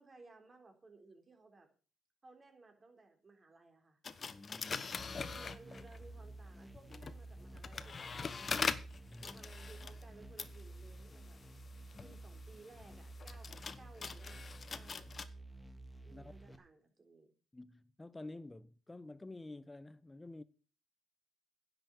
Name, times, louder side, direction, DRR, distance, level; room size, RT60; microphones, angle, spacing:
voice 1, 0.0-1.7 2.2-4.0 5.2-8.8 9.2-11.4 12.0-15.3 16.0-17.3, right 3 dB, 30° right, 4.0 m, -60 dB
sound 1, 4.0-6.1 6.7-15.3, left 5 dB, 40° left, 1.1 m, -43 dB
voice 2, 4.3-5.2 9.1-9.4 11.9-12.2 16.1-16.6 17.5-20.4, left 2 dB, 15° left, 0.9 m, -51 dB
sound 2, 5.0-16.6, right 2 dB, ahead, 1.8 m, -52 dB
10.5 x 7.1 x 8.5 m
cardioid pair, 90°, 0 cm